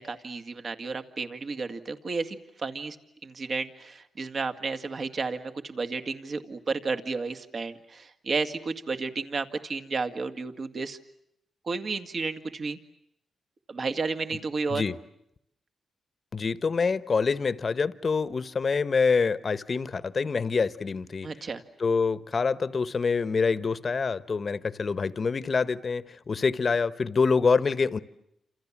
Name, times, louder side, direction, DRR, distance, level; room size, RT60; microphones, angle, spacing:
voice 1, 0.0-3.0 3.2-11.0 11.7-12.8 13.7-14.8 21.2-21.6, right 4 dB, 45° right, 2.1 m, -32 dB
voice 2, 16.3-21.3 21.8-28.0, left 5 dB, 40° left, 1.2 m, -26 dB
29.5 x 27.5 x 7.4 m
cardioid pair, 100°, 0 cm